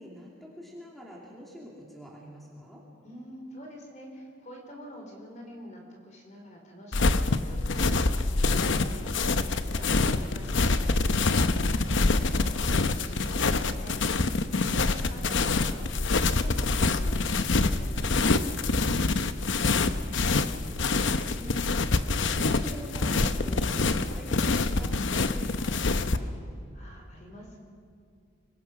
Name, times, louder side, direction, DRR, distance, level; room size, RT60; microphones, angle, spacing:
voice 1, 0.0-2.8 19.3-26.4, equal, ahead, -4 dB, 2.8 m, -45 dB
voice 2, 3.0-13.9 14.6-18.5 26.7-27.6, equal, 35° left, 1 dB, 4.1 m, -46 dB
sound 1, 6.9-26.2, left 3 dB, 65° left, 0.8 m, -26 dB
24.5 x 21.0 x 6.0 m, 2.4 s
head